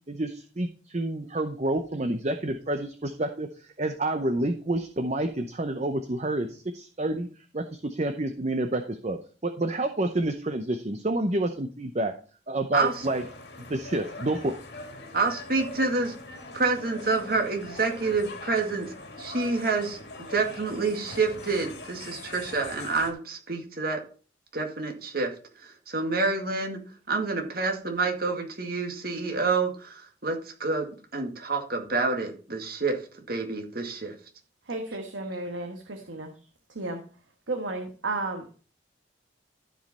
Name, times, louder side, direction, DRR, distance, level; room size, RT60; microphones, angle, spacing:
voice 1, 0.1-7.3 7.5-12.1 12.5-13.2 13.6-14.6, right 1 dB, 35° right, 7 dB, 0.7 m, -29 dB
voice 2, 12.7-13.1 15.1-16.1 16.5-20.0 20.3-24.0 24.5-25.3 25.6-26.8 27.1-33.0 33.3-34.1, right 3 dB, 50° right, 3 dB, 2.0 m, -28 dB
sound 1, 12.8-23.1, left 2 dB, 60° left, 2.2 m, -42 dB
voice 3, 34.7-36.3 36.7-37.0 37.5-38.6, right 2 dB, 85° right, 4 dB, 1.3 m, -33 dB
13.5 x 5.2 x 4.2 m, 0.39 s
head